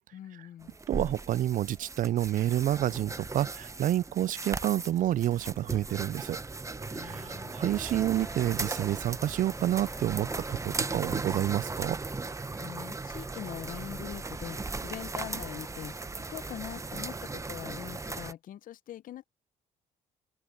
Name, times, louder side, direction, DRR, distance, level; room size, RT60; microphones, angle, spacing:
voice 1, 0.1-0.8 6.9-7.6 12.6-16.0 16.3-19.2, left 11 dB, 60° left, 0.8 m, -42 dB
sound 1, 0.6-18.3, right 3 dB, 20° right, 1.0 m, -37 dB
voice 2, 0.9-6.4 7.0-12.0, right 12 dB, 55° right, 0.5 m, -29 dB
sound 2, 6.3-12.3, right 5 dB, 40° right, 3.6 m, -61 dB
sound 3, 7.1-16.2, left 2 dB, 15° left, 6.8 m, -53 dB
open air
supercardioid pair, 70°, 16 cm